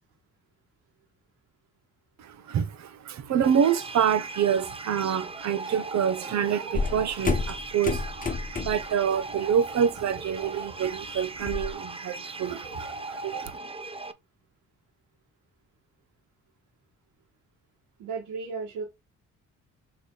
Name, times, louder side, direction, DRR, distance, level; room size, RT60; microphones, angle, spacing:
voice 1, 2.2-13.2, right 8 dB, 65° right, 1.0 m, -27 dB
sound 1, 3.4-14.1, right 2 dB, 20° right, 0.8 m, -39 dB
sound 2, 6.7-9.0 9.3-9.7 10.0-11.7, left 4 dB, 25° left, 1.2 m, -30 dB
voice 2, 18.0-18.8, right 5 dB, 90° right, 2.2 m, -34 dB
6.6 x 3.4 x 4.2 m
cardioid pair, 90°, 30 cm